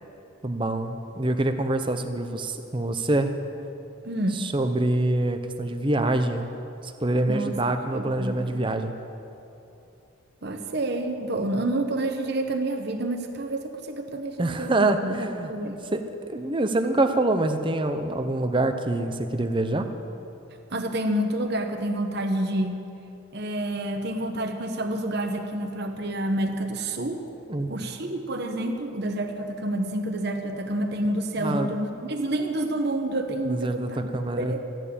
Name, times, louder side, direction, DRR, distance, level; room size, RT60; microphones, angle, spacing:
voice 1, 0.4-3.3 4.3-6.5 6.8-8.9 14.4-15.5 15.9-19.9 27.5-27.8 31.4-31.7 33.5-34.6, right 2 dB, 25° right, 7 dB, 0.7 m, -25 dB
voice 2, 4.0-4.4 7.3-8.6 10.4-15.8 20.7-22.8 23.3-27.2 27.7-34.1 34.4-34.6, right 1 dB, 50° right, 4 dB, 1.0 m, -29 dB
14.0 x 9.1 x 8.5 m, 2.8 s
head